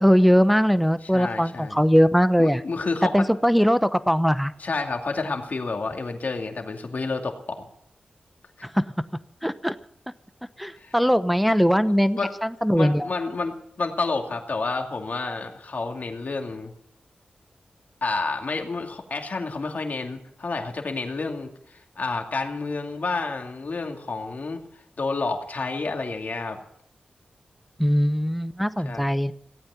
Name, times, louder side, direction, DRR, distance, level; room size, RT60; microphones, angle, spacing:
voice 1, 0.0-2.6 3.1-4.5 8.7-8.9 9.4-9.7 10.6-13.1 27.8-29.3, equal, ahead, 12 dB, 0.9 m, -20 dB
voice 2, 1.0-1.8 2.4-3.3 4.6-7.6 8.6-8.7 10.8-10.9 11.8-12.3 12.8-16.7 18.0-24.6 25.0-26.6 28.8-29.0, left 3 dB, 60° left, 3 dB, 2.5 m, -30 dB
17.0 x 8.9 x 8.2 m, 0.71 s
cardioid pair, 60°, 3 cm